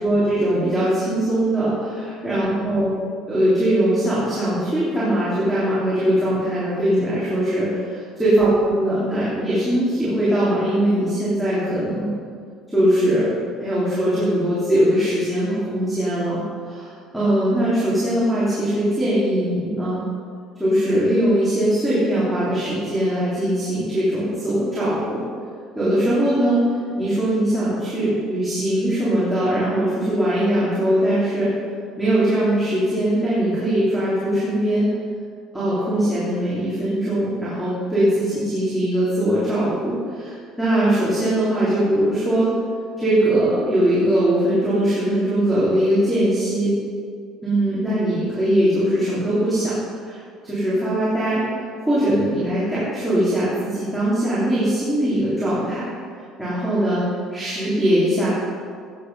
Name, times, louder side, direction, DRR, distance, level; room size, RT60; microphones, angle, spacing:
voice 1, 0.0-2.9 3.3-12.1 12.7-20.0 20.6-25.2 25.7-31.5 32.0-34.8 35.5-42.5 43.0-46.7 47.4-50.2 50.4-55.8 56.4-58.3, right 1 dB, ahead, -11 dB, 3.3 m, -21 dB
15.0 x 9.6 x 5.5 m, 2.2 s
cardioid pair, 170°, 0 cm